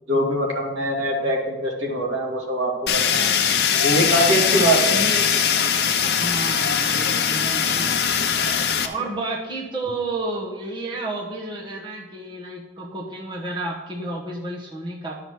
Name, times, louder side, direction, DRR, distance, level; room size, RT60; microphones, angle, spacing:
voice 1, 0.1-3.3 3.8-5.0, right 1 dB, 80° right, -1 dB, 2.3 m, -23 dB
Fire, 2.9-8.9, left 7 dB, 55° left, 0.7 m, -21 dB
voice 2, 4.5-5.4 6.2-8.0 8.8-15.2, right 2 dB, 25° right, -3 dB, 1.1 m, -31 dB
12.0 x 5.8 x 4.7 m, 1.2 s
head